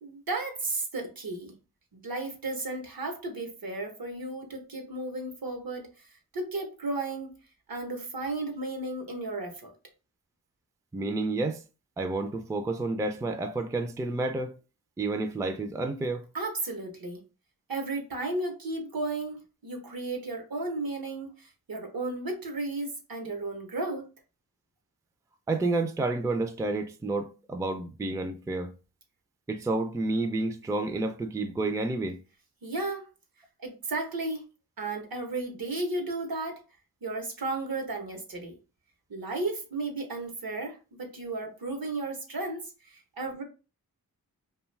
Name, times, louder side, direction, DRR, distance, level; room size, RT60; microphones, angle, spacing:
voice 1, 0.0-1.5 1.9-6.1 6.3-7.3 7.7-9.7 16.3-17.2 17.7-24.1 32.6-33.1 33.6-34.5 34.8-36.6 37.0-38.6 39.1-43.4, right 2 dB, 70° right, 0.9 m, -34 dB
voice 2, 10.9-11.6 12.0-14.6 15.0-16.3 25.5-28.7 29.5-32.2, right 2 dB, 10° right, 0.3 m, -30 dB
2.5 x 2.3 x 3.1 m
wide cardioid pair, 60°, 37 cm